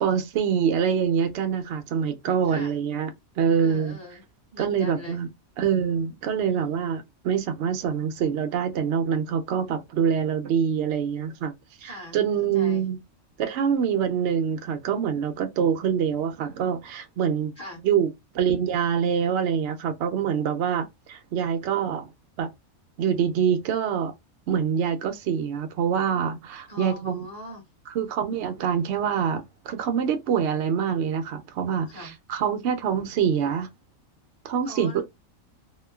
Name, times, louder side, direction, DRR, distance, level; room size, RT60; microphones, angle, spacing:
voice 1, 0.0-3.1 3.4-4.0 4.6-5.3 5.6-11.5 11.8-13.0 13.4-17.5 17.8-18.1 18.3-22.1 22.4-22.5 23.0-24.1 24.5-27.2 28.0-33.7 34.4-35.0, right 7 dB, 65° right, 0.8 m, -25 dB
voice 2, 2.4-2.7 3.6-4.2 4.5-5.2 6.5-6.8 11.8-12.2 12.5-12.8 17.6-17.8 26.7-27.7 31.8-32.1 34.6-35.0, left 1 dB, 30° left, 1.4 m, -41 dB
3.0 x 2.2 x 2.2 m
omnidirectional pair, 1.4 m